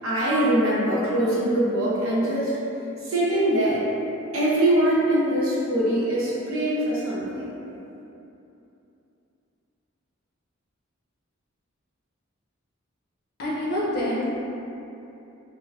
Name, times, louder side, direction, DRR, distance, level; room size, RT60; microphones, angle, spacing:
voice 1, 0.0-2.6 3.0-3.8 4.3-7.5, right 1 dB, 85° right, -7 dB, 0.7 m, -23 dB
voice 2, 13.4-14.2, left 1 dB, 50° left, -7 dB, 0.6 m, -26 dB
3.3 x 2.1 x 2.3 m, 2.9 s
head